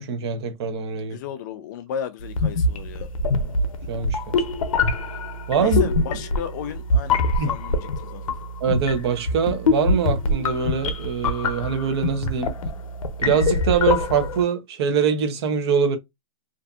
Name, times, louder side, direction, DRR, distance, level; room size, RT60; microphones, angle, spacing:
voice 1, 0.0-1.2 3.4-3.5 3.9-4.3 5.5-5.8 7.4-7.5 8.6-12.5 13.2-16.0, right 6 dB, 50° right, 0.7 m, -23 dB
voice 2, 1.1-3.1 5.6-8.2, left 8 dB, 35° left, 0.4 m, -34 dB
sound 1, 2.3-14.4, left 3 dB, 85° left, 0.6 m, -24 dB
2.5 x 2.5 x 2.3 m
hypercardioid pair, 150°, 17 cm